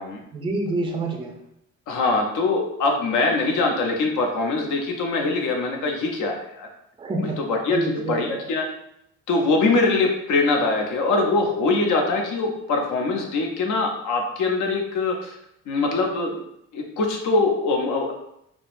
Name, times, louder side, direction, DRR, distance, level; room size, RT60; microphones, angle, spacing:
voice 1, 0.3-1.4 7.0-7.4 7.7-8.4, right 2 dB, 15° right, 1 dB, 0.4 m, -27 dB
voice 2, 1.9-6.7 7.2-8.7 9.3-15.4 15.7-16.4 16.7-18.1, left 3 dB, 80° left, 2 dB, 0.7 m, -23 dB
3.6 x 2.0 x 2.4 m, 0.78 s
cardioid pair, 90°, 30 cm